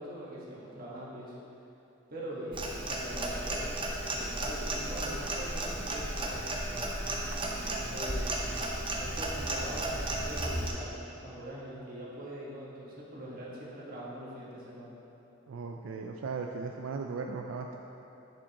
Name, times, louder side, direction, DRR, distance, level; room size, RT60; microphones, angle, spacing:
voice 1, 0.0-1.3 2.1-6.9 7.4-8.4 9.0-15.0, equal, 50° right, -6 dB, 1.4 m, -42 dB
Clock, 2.5-10.7, right 1 dB, 25° right, 0.7 m, -34 dB
voice 2, 15.5-17.8, right 4 dB, 85° right, 2 dB, 0.4 m, -37 dB
10.5 x 5.0 x 2.9 m, 2.9 s
head